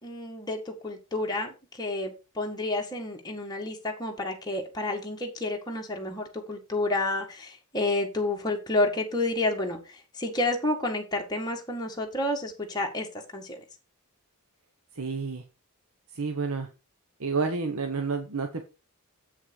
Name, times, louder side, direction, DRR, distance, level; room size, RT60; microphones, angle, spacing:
voice 1, 0.0-9.8 10.2-13.1 13.3-13.6, left 2 dB, 20° left, 0 dB, 1.9 m, -30 dB
voice 2, 14.9-15.4 16.1-16.7 17.2-18.6, right 4 dB, 70° right, 5 dB, 1.0 m, -29 dB
8.0 x 6.4 x 4.6 m, 0.29 s
head